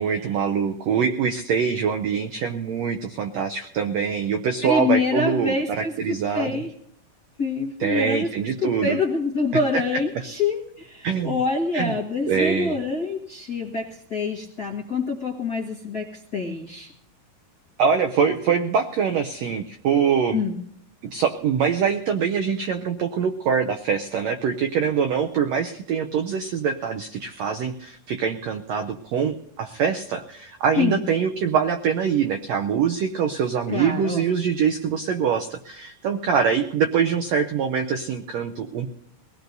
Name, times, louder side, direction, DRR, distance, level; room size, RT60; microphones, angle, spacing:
voice 1, 0.0-6.6 7.8-9.0 11.0-11.4 11.7-11.9 12.3-12.8 17.8-20.4 21.1-38.9, right 7 dB, 85° right, 6 dB, 1.5 m, -24 dB
voice 2, 4.6-6.7 7.4-8.3 8.6-16.9 20.3-20.6 30.8-31.0 33.7-34.2, left 4 dB, 50° left, -3 dB, 1.1 m, -26 dB
23.0 x 17.5 x 2.7 m, 0.74 s
omnidirectional pair, 3.9 m